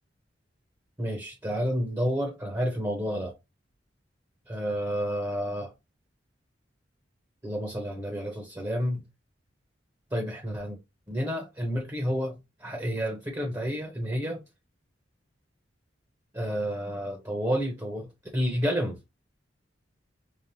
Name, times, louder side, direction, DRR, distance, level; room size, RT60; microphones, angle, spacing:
voice 1, 1.0-3.4 4.5-5.7 7.4-9.0 10.1-10.8 11.1-14.4 16.3-19.0, equal, 20° right, 1.0 m, -30 dB
5.1 x 2.3 x 2.8 m
head